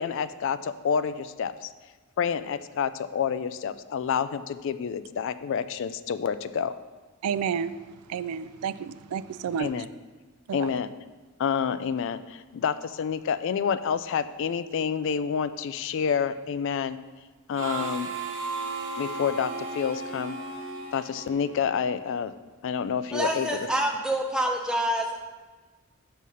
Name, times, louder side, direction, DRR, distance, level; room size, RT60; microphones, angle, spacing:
voice 1, 0.0-1.7 2.2-6.7 9.6-9.9 10.5-10.9 11.4-17.0 17.5-18.1 19.0-20.4 20.9-22.3 22.6-23.6, left 7 dB, 55° left, 14 dB, 0.3 m, -28 dB
voice 2, 7.2-7.7 8.1-9.7, right 7 dB, 80° right, 15 dB, 0.3 m, -30 dB
Harmonica, 17.5-22.0, right 3 dB, 55° right, 0.7 m, -35 dB
voice 3, 23.1-25.2, right 1 dB, 5° right, 1 dB, 0.7 m, -27 dB
6.3 x 5.5 x 5.5 m, 1.3 s
head